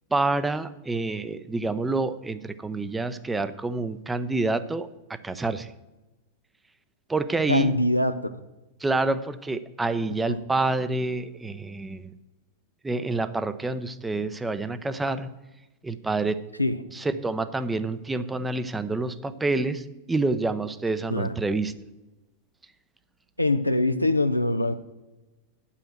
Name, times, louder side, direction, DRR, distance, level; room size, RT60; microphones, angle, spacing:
voice 1, 0.1-5.7 7.1-7.8 8.8-12.1 12.8-15.3 15.8-16.4 16.9-21.7, right 3 dB, 10° right, 0.6 m, -27 dB
voice 2, 7.5-8.3 10.1-10.4 16.6-16.8 21.1-21.4 23.4-24.7, left 1 dB, 85° left, 0.5 m, -23 dB
9.0 x 5.7 x 7.9 m
figure-of-eight pair, 90°, 0 cm